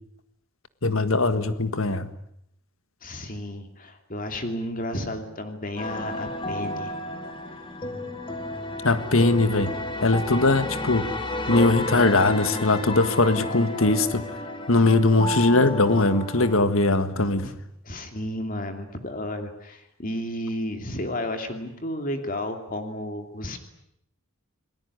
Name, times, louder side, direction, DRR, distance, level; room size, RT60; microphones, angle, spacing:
voice 1, 0.8-2.1 8.8-9.7 10.0-11.1 11.5-14.2 14.7-17.5, left 2 dB, 70° left, 11 dB, 1.8 m, -20 dB
voice 2, 3.0-6.9 7.5-7.7 17.4-17.5 17.8-23.6, left 1 dB, 40° left, 6 dB, 2.8 m, -32 dB
sound 1, 5.8-16.6, left 2 dB, 25° left, 2.4 m, -32 dB
28.5 x 20.0 x 9.7 m, 0.77 s
head